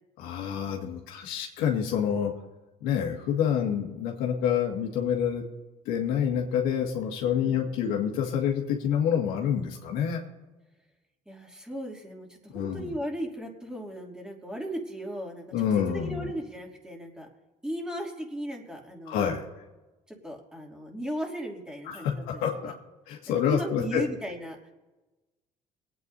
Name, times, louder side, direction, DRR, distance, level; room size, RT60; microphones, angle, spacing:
voice 1, 0.2-2.3 2.8-5.4 5.9-10.2 12.5-12.9 15.5-16.3 19.1-19.5 21.9-22.7 23.1-24.0, left 8 dB, 90° left, 1 dB, 2.0 m, -27 dB
voice 2, 7.3-7.8 11.3-17.3 17.6-19.4 20.1-22.7 23.3-24.7, equal, 5° right, 0 dB, 2.8 m, -37 dB
24.5 x 9.2 x 2.8 m, 1.1 s
supercardioid pair, 90°, 15 cm